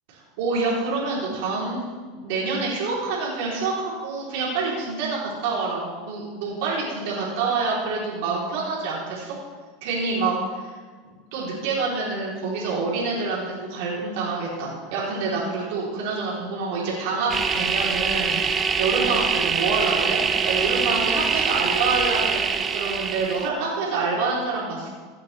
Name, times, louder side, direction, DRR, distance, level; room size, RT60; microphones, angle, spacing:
voice 1, 0.1-1.8 2.1-9.4 9.8-10.3 10.6-10.7 11.0-13.4 13.7-20.2 20.4-22.4 22.7-24.9, right 4 dB, 70° right, -5 dB, 3.5 m, -27 dB
sound 1, 17.3-23.5, right 5 dB, 25° right, 0.7 m, -24 dB
16.5 x 8.4 x 3.4 m, 1.5 s
supercardioid pair, 115°, 0 cm